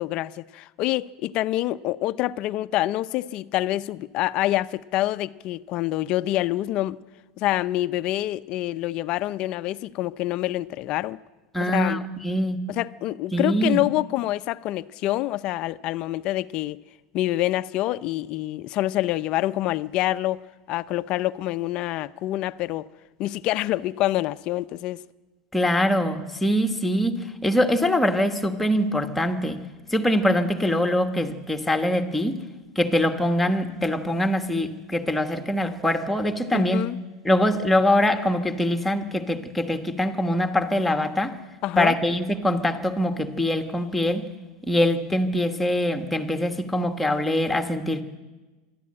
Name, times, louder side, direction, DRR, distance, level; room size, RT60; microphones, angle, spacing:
voice 1, 0.0-7.0 7.4-11.2 11.6-12.0 12.7-16.8 17.1-22.9 23.2-25.0 36.5-37.0 41.6-41.9, left 15 dB, 45° left, 0.5 m, -26 dB
voice 2, 11.5-12.6 13.3-13.8 25.5-29.6 29.9-32.4 32.7-36.8 37.2-41.4 41.8-44.3 44.7-48.0, left 1 dB, 5° left, 1.3 m, -23 dB
25.0 x 12.0 x 8.7 m
supercardioid pair, 150°, 2 cm